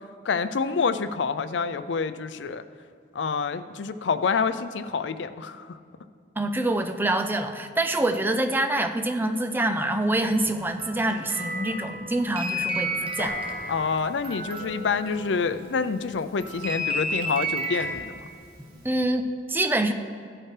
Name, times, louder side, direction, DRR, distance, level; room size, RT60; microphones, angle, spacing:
voice 1, 0.3-2.6 3.1-5.8 13.7-18.2, left 5 dB, 80° left, 12 dB, 0.5 m, -27 dB
voice 2, 6.4-13.4 18.8-19.9, right 1 dB, 10° right, 7 dB, 0.5 m, -26 dB
sound 1, 10.2-15.9 16.4-17.9, equal, 30° right, 1.2 m, -32 dB
Piano, 13.2-19.0, left 2 dB, 55° right, 1.8 m, -44 dB
15.5 x 8.7 x 3.3 m, 2.2 s
head